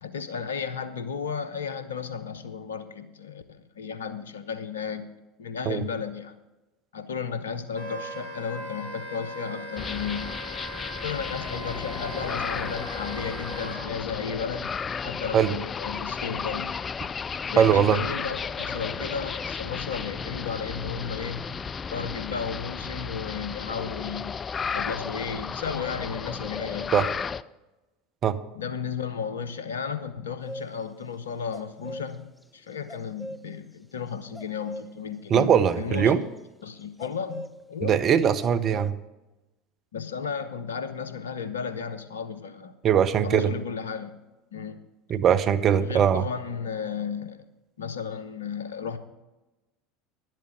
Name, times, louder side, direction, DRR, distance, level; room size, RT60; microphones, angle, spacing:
voice 1, 0.0-5.1 5.4-6.4 6.9-10.4 11.0-14.8 15.0-16.7 17.5-21.5 21.9-24.3 24.7-27.0 28.5-35.5 35.8-36.2 36.6-38.0 39.9-42.8 43.2-44.2 44.5-44.8 45.8-47.4 47.8-49.0, left 6 dB, 75° left, 11 dB, 0.8 m, -34 dB
Wind instrument woodwind instrument, 7.7-13.8, equal, 60° left, 2.1 m, -38 dB
sound 1, 9.8-27.4, left 6 dB, 25° left, 0.3 m, -34 dB
voice 2, 17.6-18.0 26.9-27.1 28.2-28.4 35.3-36.2 37.8-38.9 42.8-43.5 45.1-46.2, right 8 dB, 40° right, 12 dB, 0.7 m, -21 dB
sound 2, 30.5-30.7 31.5-33.4 34.3-34.9 35.6-36.4 36.8-37.6 38.1-38.2 38.4-38.9, equal, ahead, 0.7 m, -39 dB
11.5 x 7.6 x 6.4 m, 1.0 s
figure-of-eight pair, 75°, 0 cm